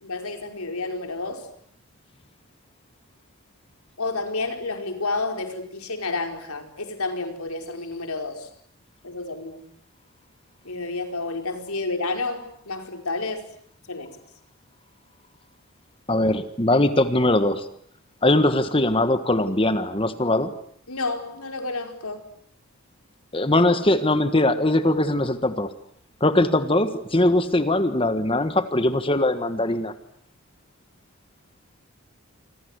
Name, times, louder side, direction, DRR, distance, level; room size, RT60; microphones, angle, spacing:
voice 1, 0.0-1.4 4.0-8.5 9.0-9.6 10.6-13.4 13.9-14.1 20.9-22.2, left 3 dB, 90° left, 5 dB, 4.9 m, -30 dB
voice 2, 16.1-17.7 18.2-20.5 23.3-25.7 26.2-29.9, left 1 dB, 25° left, 11 dB, 1.4 m, -21 dB
27.5 x 26.5 x 8.2 m, 0.64 s
head